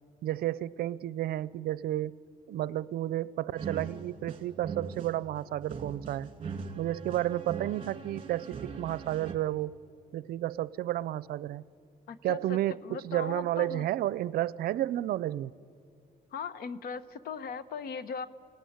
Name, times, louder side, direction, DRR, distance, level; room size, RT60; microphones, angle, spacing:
voice 1, 0.2-2.1 2.5-6.3 6.7-9.8 10.1-11.6 12.2-15.5, right 14 dB, 65° right, 0.6 m, -31 dB
sound 1, 3.6-9.3, right 5 dB, 35° right, 2.5 m, -41 dB
voice 2, 12.1-13.9 16.3-18.3, left 6 dB, 65° left, 1.2 m, -38 dB
29.0 x 18.0 x 9.5 m
cardioid pair, 110°, 17 cm